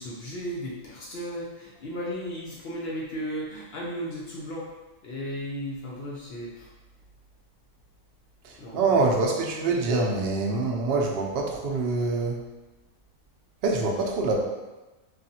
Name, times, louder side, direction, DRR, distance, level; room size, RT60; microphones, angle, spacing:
voice 1, 0.0-4.7 5.0-6.7 8.6-9.1, equal, 70° left, -4 dB, 0.6 m, -35 dB
voice 2, 8.4-12.4 13.6-14.5, right 3 dB, 65° right, 0 dB, 0.6 m, -25 dB
3.3 x 2.3 x 2.7 m, 1.1 s
omnidirectional pair, 1.5 m